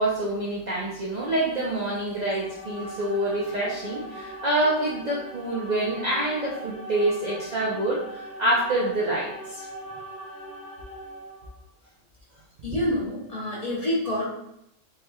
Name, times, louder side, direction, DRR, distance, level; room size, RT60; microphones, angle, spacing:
voice 1, 0.0-9.7 12.7-12.8, right 1 dB, 60° right, -5 dB, 0.4 m, -26 dB
sound 1, 2.1-11.6, right 1 dB, 85° left, 1.3 m, -41 dB
voice 2, 12.6-14.2, left 1 dB, 35° left, -7 dB, 0.7 m, -27 dB
3.3 x 2.9 x 2.3 m, 0.77 s
omnidirectional pair, 1.4 m